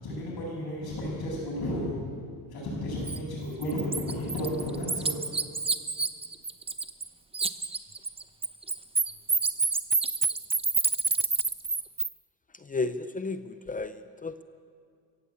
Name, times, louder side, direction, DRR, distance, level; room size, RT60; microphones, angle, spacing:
voice 1, 0.0-1.9 2.5-5.1, equal, 60° left, -7 dB, 7.6 m, -33 dB
Bird, 3.1-3.2 3.6-7.1 7.3-12.1, right 4 dB, 15° right, 0.7 m, -27 dB
voice 2, 12.6-14.4, left 3 dB, 20° left, 11 dB, 0.6 m, -33 dB
22.5 x 15.5 x 8.5 m, 2.2 s
cardioid pair, 150°, 40 cm